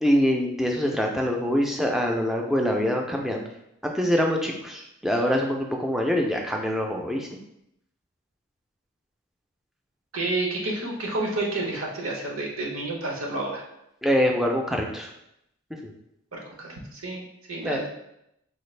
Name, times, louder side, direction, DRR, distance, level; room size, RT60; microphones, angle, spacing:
voice 1, 0.0-3.5 3.8-7.4 14.0-15.1 15.8-15.9 17.6-17.9, equal, ahead, 1 dB, 0.3 m, -24 dB
voice 2, 10.1-13.6 16.3-17.9, right 2 dB, 85° right, -1 dB, 0.9 m, -30 dB
4.0 x 2.4 x 3.2 m, 0.81 s
head